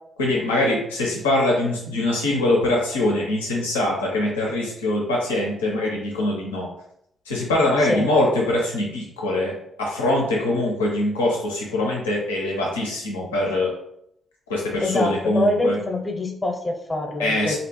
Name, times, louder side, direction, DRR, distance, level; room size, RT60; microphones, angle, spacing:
voice 1, 0.2-6.7 7.3-9.5 9.8-13.7 14.5-15.8 17.2-17.6, left 1 dB, 90° left, -2 dB, 0.5 m, -23 dB
voice 2, 14.8-17.6, left 2 dB, 30° left, 2 dB, 0.6 m, -24 dB
2.5 x 2.0 x 3.0 m, 0.73 s
hypercardioid pair, 40°, 0 cm